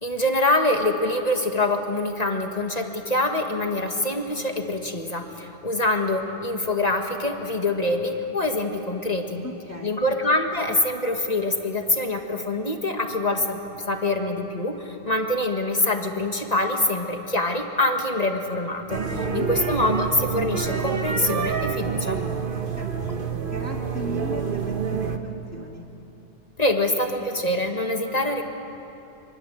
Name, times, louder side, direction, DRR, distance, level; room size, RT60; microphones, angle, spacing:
voice 1, 0.0-9.4 9.8-13.6 13.9-19.0 19.3-22.2 26.6-28.4, left 2 dB, 35° left, 4 dB, 1.8 m, -25 dB
voice 2, 9.4-10.0 19.1-19.5 22.6-25.8, equal, 15° left, -1 dB, 2.0 m, -37 dB
sound 1, 18.9-25.2, right 6 dB, 50° right, 1.4 m, -27 dB
26.0 x 24.5 x 7.9 m, 3.0 s
omnidirectional pair, 1.2 m